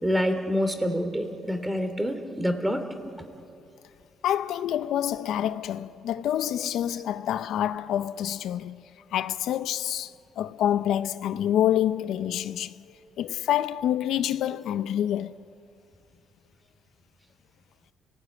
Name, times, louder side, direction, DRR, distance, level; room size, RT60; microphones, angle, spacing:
voice 1, 0.0-2.8, equal, 10° right, 3.1 m, -27 dB
voice 2, 4.2-8.8 9.1-12.7 13.2-15.3, left 11 dB, 80° left, 0.6 m, -27 dB
29.5 x 18.0 x 9.5 m
cardioid pair, 90°, 0 cm